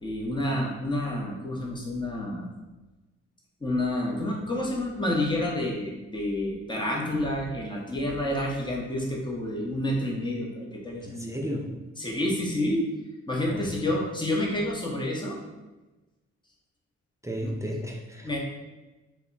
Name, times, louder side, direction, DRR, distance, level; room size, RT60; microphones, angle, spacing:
voice 1, 0.0-2.5 3.6-11.4 12.0-12.8 13.3-15.4 17.4-17.5 18.2-18.4, left 1 dB, 15° left, -2 dB, 0.7 m, -29 dB
voice 2, 11.0-11.8 13.5-13.7 17.2-18.4, equal, 10° right, -1 dB, 0.4 m, -34 dB
2.1 x 2.0 x 3.8 m, 1.1 s
cardioid pair, 60°, 31 cm